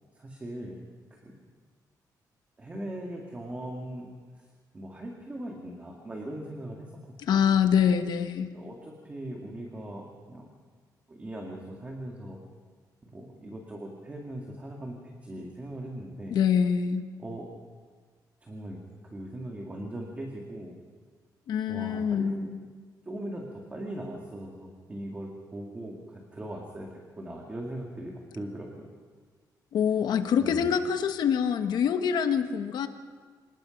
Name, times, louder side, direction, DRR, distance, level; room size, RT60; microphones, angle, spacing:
voice 1, 0.2-0.8 1.1-1.4 2.6-4.1 4.3-4.5 4.7-6.9 8.5-10.5 11.1-12.4 13.0-16.4 17.2-17.5 18.4-20.8 21.7-22.5 23.1-28.9 30.4-30.7, right 1 dB, 20° right, 0 dB, 2.1 m, -39 dB
voice 2, 7.3-8.5 16.3-17.0 21.5-22.3 29.7-32.9, left 7 dB, 75° left, 8 dB, 1.2 m, -25 dB
26.5 x 19.5 x 5.2 m, 1.5 s
wide cardioid pair, 180°, 7 cm